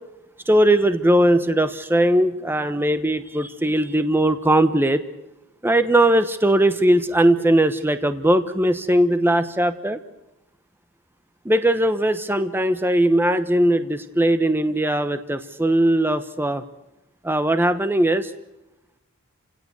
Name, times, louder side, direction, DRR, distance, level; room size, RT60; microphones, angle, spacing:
voice 1, 0.5-5.0 5.6-10.0 11.4-16.6 17.2-18.3, right 1 dB, 10° right, 10 dB, 1.1 m, -19 dB
30.0 x 17.0 x 8.0 m, 0.96 s
head